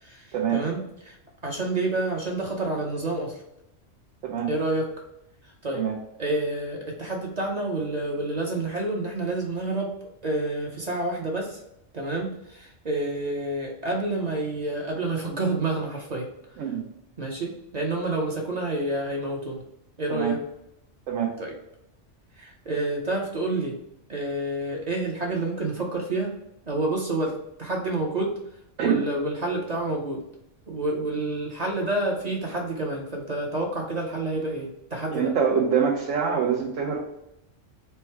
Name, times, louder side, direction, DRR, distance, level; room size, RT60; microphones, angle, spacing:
voice 1, 0.0-1.2 1.4-3.4 4.5-4.9 5.6-5.9 6.2-9.9 10.2-11.6 11.9-16.3 16.6-16.7 17.2-19.6 20.0-20.4 21.4-21.5 22.4-23.8 24.1-26.3 26.7-28.3 28.8-30.2 30.7-35.3, right 2 dB, 40° right, -1 dB, 0.7 m, -28 dB
voice 2, 35.1-37.0, right 7 dB, 85° right, -2 dB, 1.1 m, -24 dB
4.4 x 2.2 x 4.3 m, 0.82 s
omnidirectional pair, 1.3 m